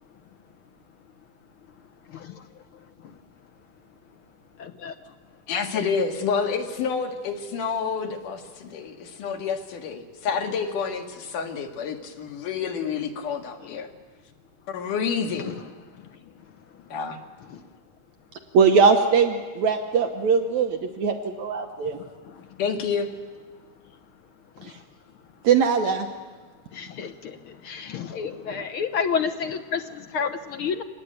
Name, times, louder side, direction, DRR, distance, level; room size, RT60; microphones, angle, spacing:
voice 1, 2.1-2.4 4.6-4.9 13.6-13.8 15.4-15.6 17.5-17.6 21.9-22.0 26.7-30.8, left 6 dB, 65° left, 8 dB, 1.3 m, -30 dB
voice 2, 5.5-13.9 14.7-15.6 16.9-17.2 22.6-23.1, left 6 dB, 80° left, 4 dB, 3.6 m, -28 dB
voice 3, 18.5-22.0 25.4-26.1, right 5 dB, 70° right, 6 dB, 2.3 m, -20 dB
25.0 x 19.5 x 9.1 m, 1.4 s
omnidirectional pair, 3.6 m